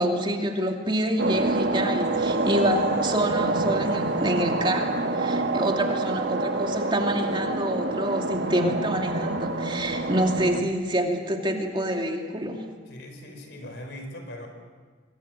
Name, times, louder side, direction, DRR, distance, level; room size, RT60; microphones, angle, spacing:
voice 1, 0.0-12.6, right 1 dB, 25° right, 2 dB, 2.7 m, -27 dB
sound 1, 1.2-10.6, right 2 dB, 65° right, 1.8 m, -27 dB
voice 2, 12.9-14.5, left 1 dB, 65° left, 5 dB, 5.3 m, -40 dB
26.5 x 23.0 x 7.8 m, 1.5 s
head